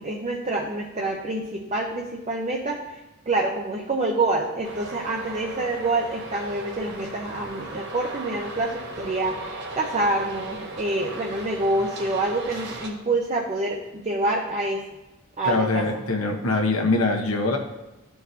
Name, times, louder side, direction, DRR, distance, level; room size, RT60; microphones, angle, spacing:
voice 1, 0.0-3.0 3.3-14.8 15.4-15.8, right 2 dB, 30° right, -1 dB, 0.7 m, -27 dB
Traffic noise roadway noise, 4.6-12.9, right 2 dB, 55° right, 1.2 m, -37 dB
voice 2, 15.4-17.6, left 2 dB, 80° left, 1 dB, 1.1 m, -23 dB
12.5 x 4.6 x 2.8 m, 1.0 s
head